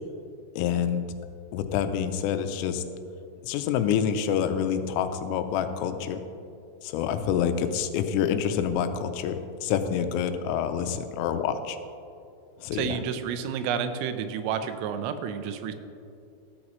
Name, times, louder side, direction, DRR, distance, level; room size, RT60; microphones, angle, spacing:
voice 1, 0.6-1.0 1.5-2.8 3.4-6.2 6.8-11.8 12.6-13.0, left 8 dB, 85° left, 8 dB, 3.3 m, -27 dB
voice 2, 12.7-15.7, right 7 dB, 85° right, 9 dB, 3.3 m, -30 dB
14.0 x 13.0 x 3.1 m, 2.5 s
omnidirectional pair, 5.8 m